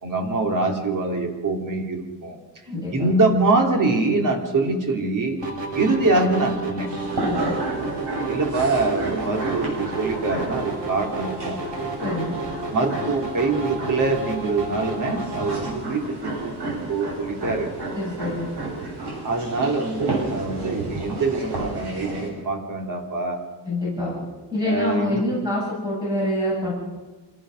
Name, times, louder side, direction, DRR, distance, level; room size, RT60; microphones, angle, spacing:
voice 1, 0.0-2.4 2.9-5.4 5.7-6.9 8.3-11.6 12.7-17.7 19.2-23.4 24.7-25.2, right 3 dB, 45° right, 3 dB, 3.2 m, -24 dB
voice 2, 2.7-3.2 7.2-7.4 12.0-12.4 17.9-18.5 23.6-24.2 24.5-26.7, left 1 dB, 10° right, -6 dB, 7.5 m, -26 dB
sound 1, 5.4-15.8, right 2 dB, 85° right, 3.9 m, -31 dB
sound 2, 6.9-22.3, right 2 dB, 65° right, 7.8 m, -32 dB
26.5 x 17.0 x 6.5 m, 1.3 s
wide cardioid pair, 175°, 42 cm